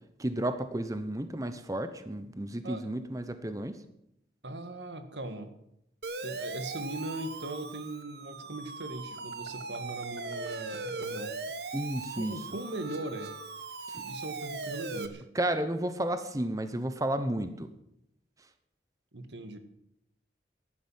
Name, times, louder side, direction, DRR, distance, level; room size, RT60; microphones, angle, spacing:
voice 1, 0.2-3.8 11.7-12.4 13.9-14.0 15.3-17.7, right 1 dB, 20° right, 10 dB, 0.9 m, -32 dB
voice 2, 4.4-5.5 6.2-11.4 12.2-13.4 13.9-15.2 19.1-19.6, right 1 dB, 85° right, 9 dB, 1.8 m, -39 dB
Siren, 6.0-15.1, right 3 dB, 65° right, 1.2 m, -39 dB
14.0 x 11.0 x 7.4 m, 0.78 s
head